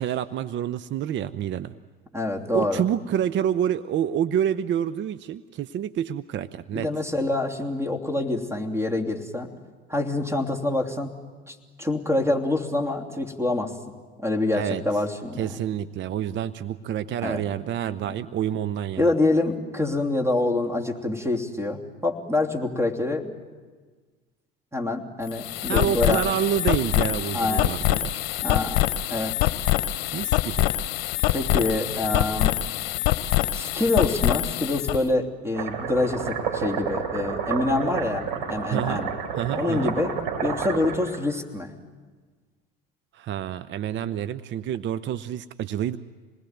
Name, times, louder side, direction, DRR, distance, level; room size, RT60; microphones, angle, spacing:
voice 1, 0.0-1.7 2.5-6.9 14.5-14.8 15.4-19.1 25.7-28.2 30.1-30.7 38.7-39.0 39.3-39.9 43.1-46.0, right 10 dB, 40° right, 14 dB, 0.7 m, -28 dB
voice 2, 2.1-2.8 6.7-9.5 9.9-11.1 11.5-13.7 14.2-15.5 17.2-17.4 18.0-18.2 19.0-23.4 24.7-26.2 27.3-27.7 28.4-28.8 29.1-29.5 31.3-32.6 33.5-39.1 39.5-40.1 40.4-41.7, left 2 dB, 10° right, 4 dB, 3.1 m, -26 dB
sound 1, 25.2-35.0, left 15 dB, 65° left, 1.0 m, -25 dB
sound 2, 35.5-41.2, right 6 dB, 65° right, 4.8 m, -30 dB
27.5 x 20.0 x 9.3 m, 1.4 s
hypercardioid pair, 75°, 29 cm